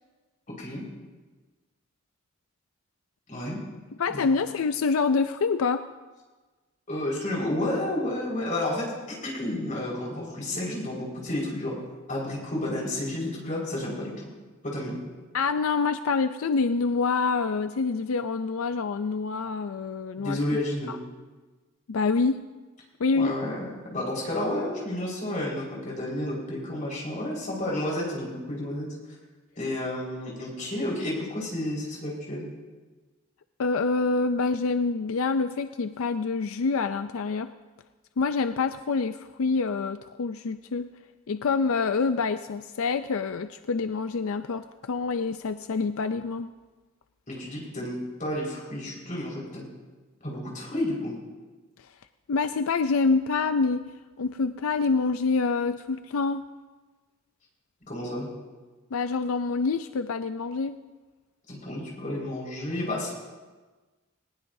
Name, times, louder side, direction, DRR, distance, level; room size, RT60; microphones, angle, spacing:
voice 1, 3.3-3.6 4.1-4.2 6.9-11.7 12.1-14.3 14.6-15.0 20.2-20.9 23.1-28.9 29.6-32.5 47.3-49.6 50.2-51.2 57.9-58.3 61.5-63.1, left 1 dB, 40° left, -4 dB, 4.9 m, -31 dB
voice 2, 4.0-5.8 15.3-20.4 21.9-22.4 23.0-23.4 33.6-37.5 38.2-40.9 41.3-46.5 52.3-53.8 54.2-56.4 58.9-60.7, left 4 dB, 85° left, 10 dB, 0.5 m, -26 dB
19.5 x 18.5 x 2.7 m, 1.3 s
head